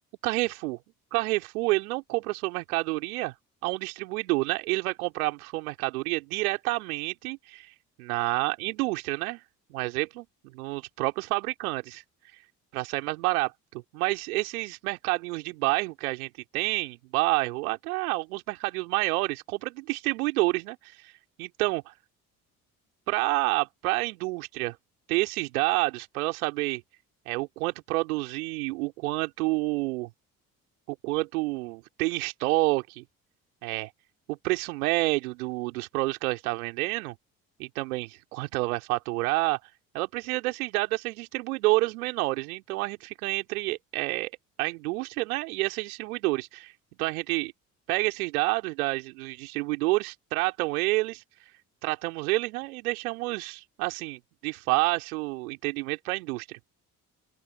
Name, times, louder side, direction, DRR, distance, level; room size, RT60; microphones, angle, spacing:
voice 1, 0.2-0.8 1.1-3.3 3.6-7.7 8.1-9.4 9.7-10.2 10.5-12.0 12.7-21.1 21.4-21.8 23.1-24.8 25.1-26.8 27.3-30.1 30.9-33.0 33.6-33.9 34.3-37.1 37.6-39.6 39.9-44.3 44.6-46.7 47.0-47.5 47.9-51.2 51.8-56.6, right 22 dB, 75° right, 3.2 m, -29 dB
open air
figure-of-eight pair, 45°, 43 cm